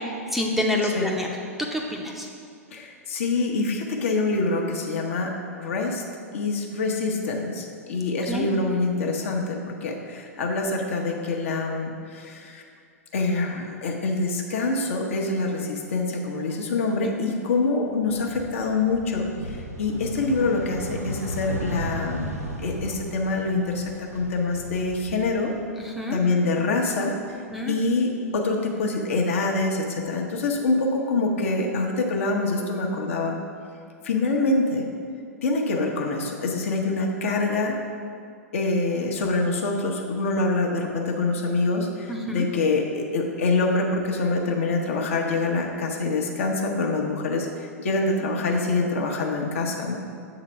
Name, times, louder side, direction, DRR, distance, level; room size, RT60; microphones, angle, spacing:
voice 1, 0.3-1.3 1.7-2.3 8.3-8.5 25.8-26.2 27.5-27.8 42.1-42.5, left 1 dB, ahead, -1 dB, 0.6 m, -27 dB
voice 2, 2.7-6.0 6.3-12.6 13.1-22.3 22.6-25.5 26.1-27.1 27.7-33.4 34.0-34.9 35.4-37.8 38.5-50.0, left 3 dB, 60° left, 1 dB, 0.9 m, -25 dB
Car driving past, 17.9-26.0 26.4-27.6, equal, 90° right, 0.9 m, -36 dB
7.4 x 3.9 x 5.4 m, 2.3 s
figure-of-eight pair, 100°, 8 cm